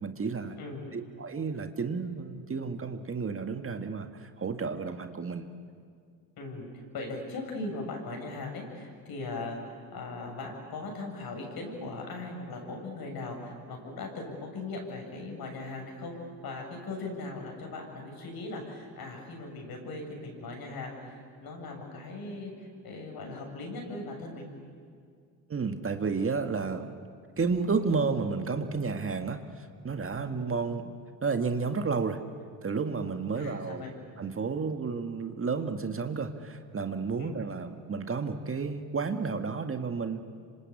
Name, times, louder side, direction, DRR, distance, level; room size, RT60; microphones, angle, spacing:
voice 1, 0.0-0.6 0.9-5.5 25.5-26.9 27.4-30.9 31.2-32.2 32.6-33.8 34.2-40.2, right 4 dB, 30° right, 7 dB, 1.8 m, -31 dB
voice 2, 0.6-0.9 6.4-16.2 16.4-24.5 30.2-30.3 33.4-33.9 37.2-37.4, left 2 dB, 60° left, 2 dB, 7.4 m, -39 dB
26.0 x 26.0 x 8.6 m, 2.1 s
supercardioid pair, 75°, 41 cm